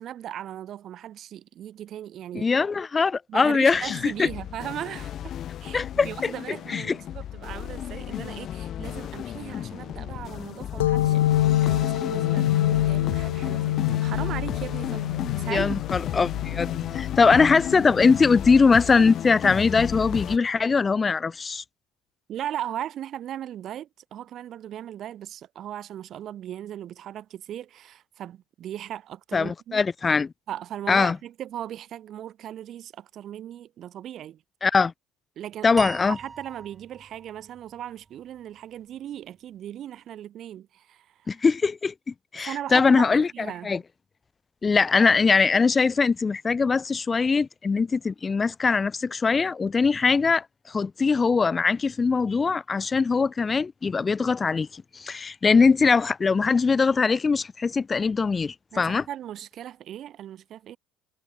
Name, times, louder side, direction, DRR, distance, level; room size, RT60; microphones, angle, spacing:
voice 1, 0.0-2.5 3.3-5.3 5.6-11.3 11.6-15.8 22.3-29.8 30.5-34.4 35.4-35.7 36.2-41.4 42.4-43.7 58.7-60.8, right 11 dB, 55° right, 4.3 m, -38 dB
voice 2, 2.3-4.3 5.7-6.3 6.7-7.0 15.5-21.6 29.3-30.3 30.9-31.2 34.6-34.9 35.6-36.2 41.3-41.9 42.3-43.3 43.6-43.8 44.6-59.0, left 4 dB, 30° left, 0.8 m, -22 dB
sound 1, 3.7-20.4, left 10 dB, 55° left, 3.4 m, -33 dB
sound 2, 10.8-18.1, left 14 dB, 85° left, 1.9 m, -26 dB
sound 3, 35.8-39.0, right 4 dB, 30° right, 6.5 m, -41 dB
hypercardioid pair, 65°, 0 cm